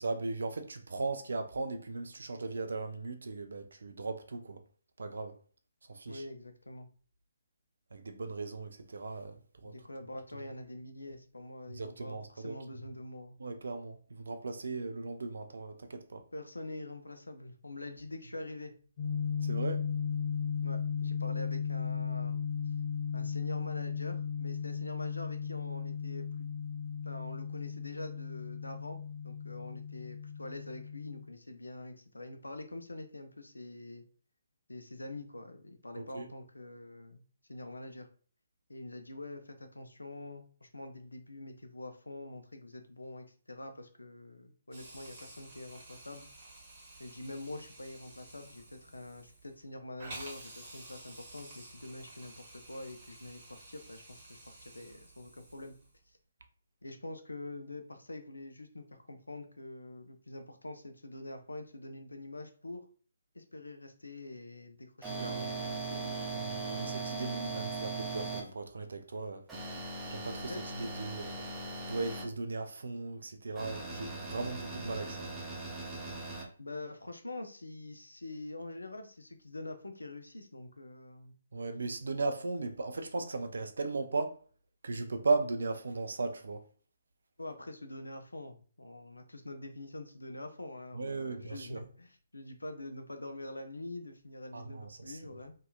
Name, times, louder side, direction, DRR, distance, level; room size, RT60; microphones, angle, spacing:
voice 1, 0.0-4.6 5.0-5.4 5.9-6.2 7.9-9.7 11.7-12.5 13.4-16.2 19.4-19.9 36.0-36.3 65.2-65.5 66.3-69.4 70.1-71.5 71.9-75.3 81.5-84.4 84.8-86.6 90.9-91.8 94.5-95.2, right 3 dB, 60° right, 0.4 m, -37 dB
voice 2, 6.1-6.9 9.6-13.4 16.3-18.7 20.6-22.4 23.1-26.5 27.0-29.0 29.2-34.0 34.7-37.2 37.5-38.1 38.7-46.3 47.0-55.7 56.1-56.2 56.8-62.9 63.3-66.2 70.5-70.7 76.6-81.3 87.4-95.5, left 2 dB, 75° left, 0.4 m, -45 dB
sound 1, 19.0-31.2, left 6 dB, 40° left, 0.7 m, -36 dB
Hiss, 44.7-56.0, right 2 dB, 35° right, 0.9 m, -52 dB
sound 2, 65.0-68.4 69.5-72.2 73.6-76.4, right 3 dB, 10° right, 0.6 m, -39 dB
2.7 x 2.3 x 2.2 m
figure-of-eight pair, 135°, 0 cm